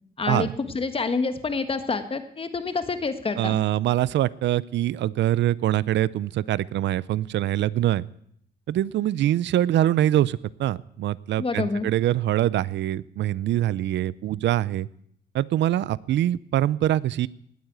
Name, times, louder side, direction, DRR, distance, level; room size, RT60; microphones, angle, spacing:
voice 1, 0.2-3.6 11.4-11.9, left 4 dB, 30° left, 9 dB, 1.5 m, -27 dB
voice 2, 3.4-8.1 8.7-14.9 15.3-17.3, right 13 dB, 80° right, 21 dB, 0.5 m, -24 dB
19.0 x 8.9 x 8.1 m, 0.69 s
cardioid pair, 120°, 18 cm